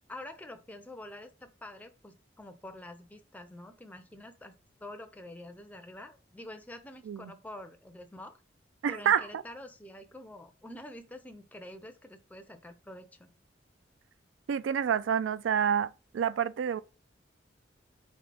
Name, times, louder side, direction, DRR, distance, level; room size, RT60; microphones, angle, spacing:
voice 1, 0.1-8.4 8.9-13.3, left 1 dB, 10° left, 0.4 m, -47 dB
voice 2, 8.8-9.4 14.5-16.8, right 8 dB, 80° right, 0.3 m, -28 dB
3.9 x 3.7 x 3.3 m
head